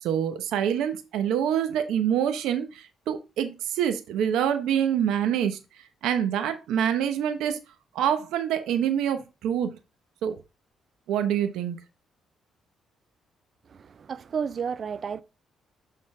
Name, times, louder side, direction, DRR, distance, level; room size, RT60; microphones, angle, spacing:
voice 1, 0.0-5.6 6.0-7.6 7.9-9.8 10.2-10.4 11.1-11.8, right 9 dB, 85° right, 0.9 m, -26 dB
voice 2, 13.7-15.2, right 6 dB, 50° right, 0.4 m, -32 dB
6.6 x 3.8 x 4.8 m
cardioid pair, 90°, 0 cm